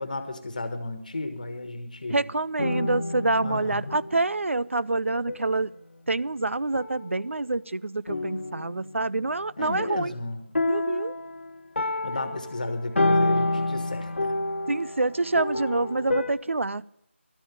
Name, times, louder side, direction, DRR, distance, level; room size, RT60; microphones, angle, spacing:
voice 1, 0.0-2.2 3.4-4.0 9.6-10.4 12.0-14.3, left 2 dB, 40° left, 8 dB, 1.5 m, -33 dB
voice 2, 2.1-5.7 6.1-10.1 10.7-11.1 14.7-16.8, right 2 dB, 85° right, 18 dB, 0.5 m, -27 dB
sound 1, 2.6-4.4 5.3-5.6 6.7-7.5 8.1-9.3 10.6-16.3, left 2 dB, 70° left, 1.1 m, -29 dB
13.0 x 8.7 x 6.8 m, 0.76 s
figure-of-eight pair, 175°, 7 cm